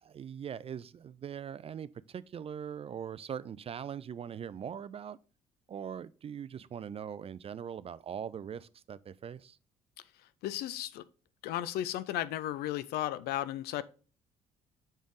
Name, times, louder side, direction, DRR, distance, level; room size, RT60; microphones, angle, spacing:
voice 1, 0.0-5.2 5.7-9.6, right 8 dB, 30° right, 0.4 m, -41 dB
voice 2, 10.4-11.0 11.4-13.8, left 13 dB, 60° left, 0.5 m, -34 dB
6.3 x 5.1 x 3.8 m
figure-of-eight pair, 45°, 19 cm